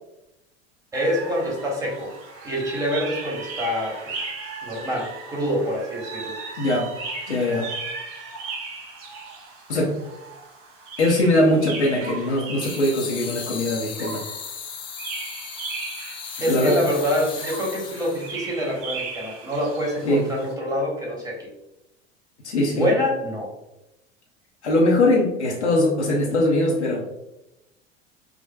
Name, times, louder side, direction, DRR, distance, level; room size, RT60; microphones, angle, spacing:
voice 1, 0.9-2.1 2.4-4.2 4.6-6.4 16.4-21.5 22.7-23.5, equal, 10° right, -2 dB, 1.1 m, -26 dB
sound 1, 0.9-20.5, right 4 dB, 40° right, 0.7 m, -37 dB
voice 2, 6.6-6.9 7.3-7.7 9.7-9.9 11.0-14.2 16.5-16.8 20.0-20.2 22.4-22.9 24.6-27.1, left 1 dB, 80° left, -3 dB, 0.7 m, -21 dB
sound 2, 12.6-18.4, left 6 dB, 15° left, 0.3 m, -36 dB
4.8 x 2.1 x 2.2 m, 0.89 s
figure-of-eight pair, 75°, 33 cm